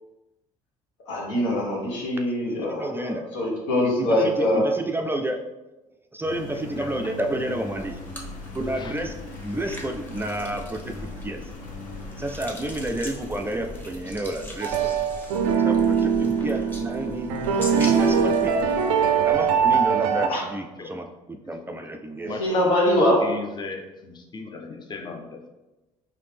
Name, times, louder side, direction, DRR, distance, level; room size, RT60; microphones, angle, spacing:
voice 1, 1.1-4.6 20.2-20.4 22.4-23.2, left 1 dB, 75° left, -2 dB, 1.1 m, -23 dB
voice 2, 2.7-3.2 3.8-5.4 6.1-8.0 8.5-11.4 12.2-15.0 15.6-18.6 19.2-22.4, right 1 dB, 15° right, 4 dB, 0.4 m, -30 dB
Engine, 6.2-15.7, left 2 dB, 55° left, 0.8 m, -41 dB
voice 3, 6.5-7.1 8.6-9.0 20.8-21.0 21.5-21.9 22.2-22.6 23.2-25.5, left 4 dB, 25° left, 4 dB, 0.6 m, -38 dB
sound 1, 7.8-20.0, left 2 dB, 10° left, 1.0 m, -41 dB
sound 2, 14.6-20.3, right 7 dB, 75° right, 0.4 m, -22 dB
4.0 x 2.8 x 3.3 m, 1.1 s
hypercardioid pair, 60°, 17 cm